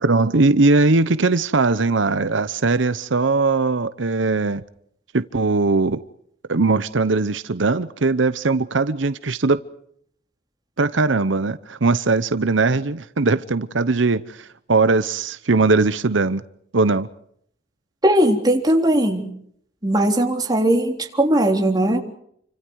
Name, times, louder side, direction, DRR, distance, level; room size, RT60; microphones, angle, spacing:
voice 1, 0.0-4.6 5.1-6.0 6.5-9.6 10.8-16.4 16.7-17.1, right 3 dB, 90° right, 14 dB, 0.9 m, -20 dB
voice 2, 18.0-19.3 19.8-22.0, right 1 dB, 20° right, 3 dB, 3.7 m, -18 dB
29.5 x 25.5 x 4.8 m, 0.68 s
head